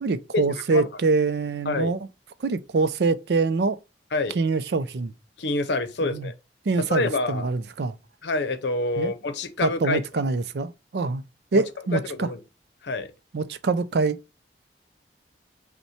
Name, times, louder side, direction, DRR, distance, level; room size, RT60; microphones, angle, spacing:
voice 1, 0.0-2.1 2.4-3.8 4.3-5.1 6.0-6.3 6.7-8.0 9.0-9.1 9.6-11.2 11.5-12.3 13.3-14.2, right 4 dB, 65° right, 0.4 m, -25 dB
voice 2, 5.4-6.3 6.9-7.5 8.2-10.0 11.9-12.4 12.8-13.1, left 2 dB, 75° left, 0.7 m, -27 dB
5.5 x 2.2 x 4.2 m
head